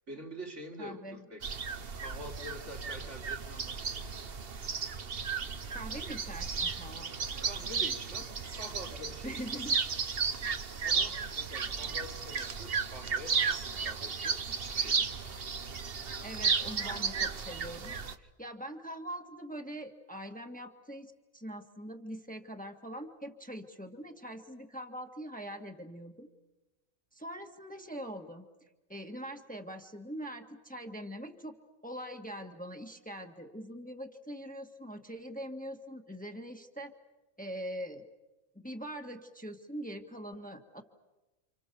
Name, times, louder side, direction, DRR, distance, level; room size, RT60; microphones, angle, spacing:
voice 1, 0.1-1.6 2.0-3.8 7.4-9.6 10.8-15.2, equal, 70° right, 1 dB, 3.7 m, -46 dB
voice 2, 0.8-1.3 5.3-7.1 9.2-9.8 16.2-26.3 27.1-28.5 28.9-31.6 31.8-36.9 37.4-38.1 38.6-40.8, equal, 5° left, 3 dB, 1.8 m, -43 dB
short toed eagles, 1.4-18.2, right 5 dB, 50° right, 1.3 m, -34 dB
30.0 x 27.5 x 6.9 m, 1.1 s
omnidirectional pair, 1.3 m